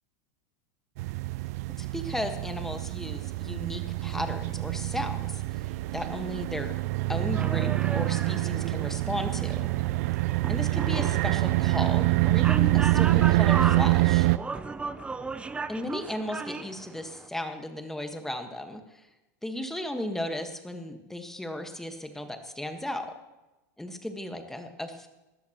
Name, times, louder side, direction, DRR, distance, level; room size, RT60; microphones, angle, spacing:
sound 1, 1.0-14.4, right 19 dB, 65° right, 0.4 m, -26 dB
voice 1, 1.8-6.7 7.1-9.7 10.5-14.3 15.7-19.1 19.4-23.1 23.8-25.1, left 1 dB, 5° left, 6 dB, 1.5 m, -35 dB
sound 2, 7.3-17.3, right 3 dB, 10° right, 0.6 m, -37 dB
19.5 x 13.0 x 3.0 m, 1.0 s
supercardioid pair, 125°, 9 cm